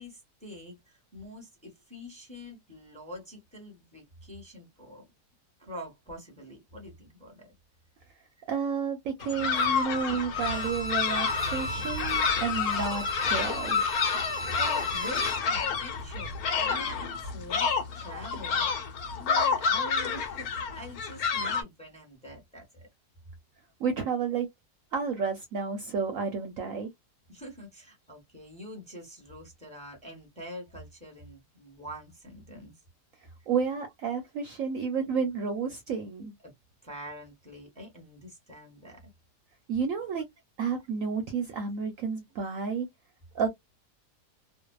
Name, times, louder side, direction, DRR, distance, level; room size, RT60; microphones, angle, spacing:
voice 1, 0.0-5.1 5.6-7.5 14.6-18.6 19.1-22.9 27.3-32.7 36.4-36.5 36.8-39.1, equal, 5° left, 0.9 m, -45 dB
voice 2, 8.5-13.9 23.8-24.5 24.9-26.9 33.5-36.3 39.7-40.2 40.6-42.9 43.3-43.5, right 5 dB, 70° right, 0.9 m, -31 dB
sound 1, 9.2-21.6, left 5 dB, 70° left, 1.1 m, -29 dB
Bowed string instrument, 10.3-15.5 15.9-16.0, left 2 dB, 50° left, 0.5 m, -35 dB
2.6 x 2.2 x 2.2 m
omnidirectional pair, 1.7 m